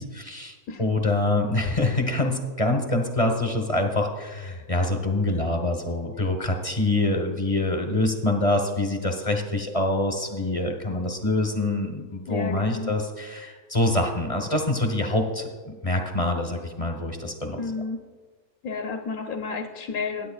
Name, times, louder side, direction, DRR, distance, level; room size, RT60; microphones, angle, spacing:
voice 1, 0.0-15.5 15.8-17.6, left 2 dB, 25° left, 3 dB, 0.9 m, -25 dB
voice 2, 12.3-12.9 17.6-18.0 18.6-20.3, left 4 dB, 65° left, 3 dB, 1.2 m, -31 dB
21.0 x 9.5 x 2.3 m, 1.4 s
omnidirectional pair, 1.7 m